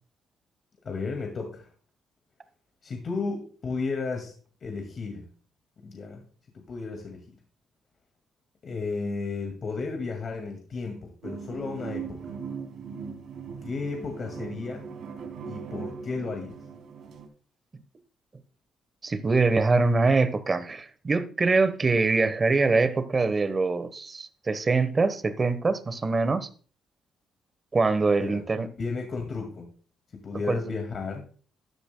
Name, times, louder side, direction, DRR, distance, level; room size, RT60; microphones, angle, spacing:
voice 1, 0.8-1.7 2.8-4.3 4.6-5.3 5.8-6.3 6.5-7.2 8.6-12.3 13.6-14.9 15.5-16.6 28.2-28.4 28.8-29.7 30.1-31.2, left 4 dB, 50° left, 2.0 m, -33 dB
sound 1, 11.2-17.3, right 6 dB, 75° right, 2.7 m, -39 dB
voice 2, 19.0-26.5 27.7-28.7 30.5-30.6, right 3 dB, 30° right, 1.0 m, -24 dB
14.0 x 10.0 x 2.2 m
cardioid pair, 90°, 0 cm